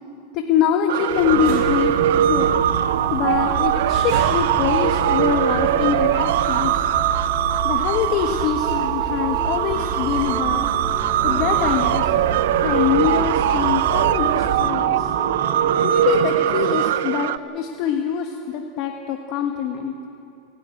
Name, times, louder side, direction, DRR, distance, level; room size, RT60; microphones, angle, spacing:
voice 1, 0.3-1.9 2.2-2.6 3.1-6.9 7.6-10.7 11.2-12.1 12.5-15.1 15.8-19.9, left 8 dB, 40° left, 3 dB, 1.5 m, -24 dB
sound 1, 0.9-17.4, right 11 dB, 75° right, 0.5 m, -21 dB
sound 2, 1.1-14.6, right 4 dB, 50° right, 5.7 m, -31 dB
sound 3, 1.9-16.9, equal, 5° right, 1.0 m, -36 dB
30.0 x 12.5 x 9.1 m, 2.6 s
supercardioid pair, 155°, 0 cm